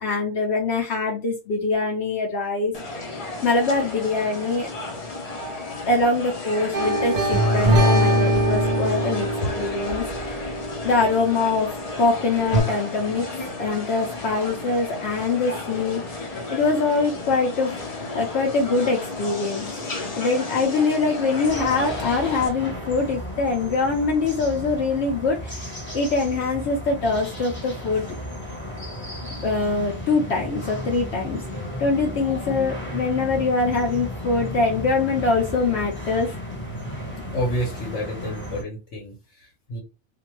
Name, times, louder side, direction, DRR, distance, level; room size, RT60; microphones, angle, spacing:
voice 1, 0.0-2.7 3.4-4.7 5.9-9.3 9.5-10.5 10.8-11.7 12.0-13.3 13.6-16.0 16.5-17.7 18.1-19.7 20.2-25.5 25.9-28.0 29.4-31.4 31.8-36.4, left 3 dB, 70° left, -1 dB, 0.8 m, -23 dB
sound 1, 2.7-22.5, left 2 dB, 45° left, 0.5 m, -33 dB
sound 2, 6.7-11.6 12.5-12.6, equal, 45° right, 0.8 m, -22 dB
sound 3, 21.4-38.6, left 1 dB, 10° left, 0.8 m, -34 dB
voice 2, 37.3-39.8, equal, 85° left, 0 dB, 1.2 m, -30 dB
2.5 x 2.2 x 2.9 m, 0.29 s
omnidirectional pair, 1.2 m